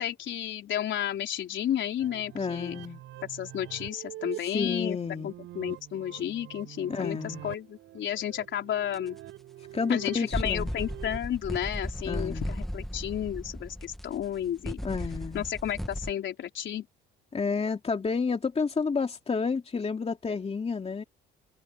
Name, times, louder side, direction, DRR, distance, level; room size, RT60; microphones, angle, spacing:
voice 1, 0.0-2.8 3.3-5.0 5.2-9.2 9.9-14.8 15.3-16.9, left 10 dB, 70° left, 4.1 m, -32 dB
sound 1, 2.0-11.2, right 14 dB, 85° right, 5.8 m, -45 dB
voice 2, 2.3-3.0 4.5-5.3 6.9-7.4 9.7-10.7 12.1-12.5 14.8-15.5 17.3-21.0, left 5 dB, 30° left, 2.5 m, -30 dB
sound 2, 8.9-9.0 10.3-16.1, equal, ahead, 1.6 m, -36 dB
cardioid pair, 90°, 20 cm